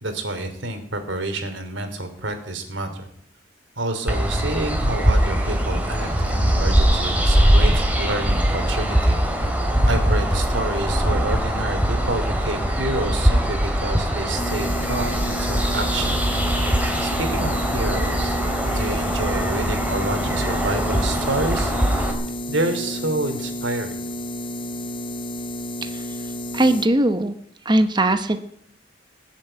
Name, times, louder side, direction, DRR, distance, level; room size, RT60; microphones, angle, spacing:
voice 1, 0.0-3.1 3.8-9.5 9.8-16.2 17.0-18.4 18.6-21.8 22.5-24.0, right 2 dB, 85° right, 7 dB, 3.1 m, -28 dB
sound 1, 4.1-22.1, equal, 10° right, 2.8 m, -21 dB
sound 2, 14.4-26.9, left 1 dB, 25° left, 0.9 m, -31 dB
voice 2, 25.8-26.2 26.5-27.3 27.6-28.4, right 1 dB, 25° right, 8 dB, 0.9 m, -20 dB
19.5 x 7.4 x 9.0 m, 0.69 s
head